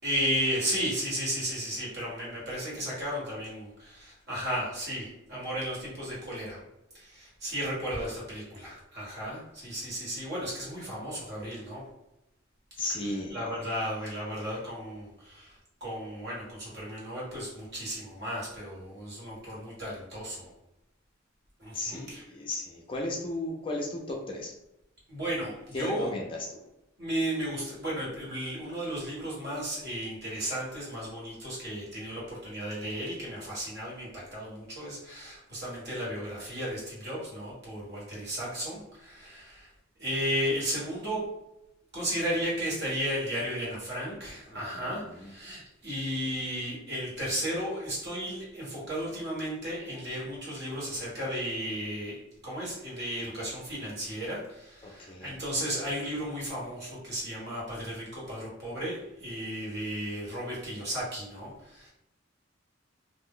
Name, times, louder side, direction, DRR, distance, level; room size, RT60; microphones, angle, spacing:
voice 1, 0.0-6.6 6.9-11.8 13.0-20.5 21.6-22.2 25.1-26.1 27.0-39.7 40.0-41.3 41.9-61.9, equal, 55° right, -6 dB, 1.4 m, -34 dB
voice 2, 12.8-13.6 21.7-24.5 25.7-26.6 44.5-45.3 54.8-55.4, left 2 dB, 25° left, 0 dB, 0.4 m, -35 dB
2.6 x 2.1 x 3.6 m, 0.88 s
head